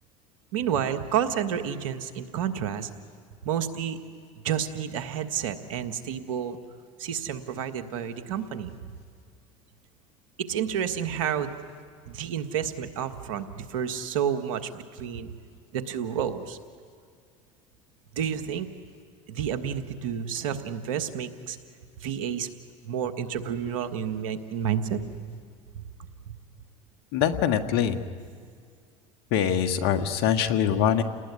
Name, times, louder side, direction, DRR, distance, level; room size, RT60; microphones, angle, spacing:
voice 1, 0.5-2.9 3.4-4.0 4.4-6.6 7.0-8.7 10.5-11.5 12.1-15.3 15.7-16.6 18.1-18.7 19.3-21.6 22.0-22.5 22.8-25.2 25.7-25.8 26.3-26.4, right 8 dB, 85° right, 8 dB, 1.7 m, -30 dB
voice 2, 27.1-28.0 29.3-31.0, left 9 dB, 65° left, 8 dB, 1.7 m, -23 dB
29.5 x 19.5 x 9.7 m, 2.1 s
hypercardioid pair, 80°, 17 cm